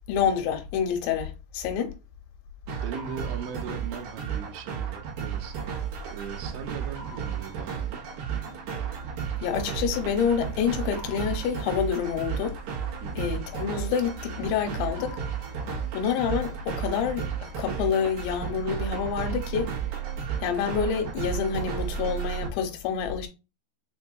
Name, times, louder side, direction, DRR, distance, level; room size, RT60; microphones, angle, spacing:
voice 1, 0.1-1.9 9.4-12.6 13.2-15.2 15.9-19.7 20.4-23.3, left 7 dB, 85° left, 3.0 m, -27 dB
sound 1, 2.7-22.5, right 8 dB, 70° right, 2.7 m, -33 dB
voice 2, 2.8-5.7 6.1-8.1 13.0-13.3, right 6 dB, 90° right, 3.1 m, -39 dB
7.1 x 2.6 x 2.3 m
omnidirectional pair, 5.2 m